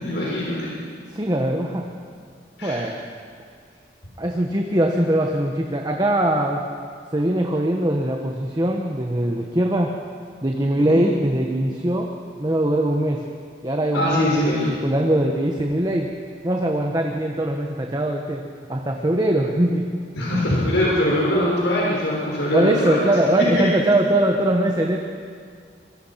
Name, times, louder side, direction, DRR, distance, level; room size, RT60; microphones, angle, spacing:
voice 1, 0.0-0.7 2.6-2.8 10.8-11.0 13.9-14.7 20.2-23.0, left 1 dB, 85° left, -5 dB, 6.0 m, -22 dB
voice 2, 1.1-1.9 2.6-3.0 4.2-6.7 7.1-9.9 10.4-12.1 12.4-13.2 13.6-16.1 16.4-18.4 18.7-20.0 22.5-25.0, right 1 dB, 25° right, 1 dB, 1.4 m, -21 dB
26.0 x 23.5 x 5.9 m, 2.1 s
head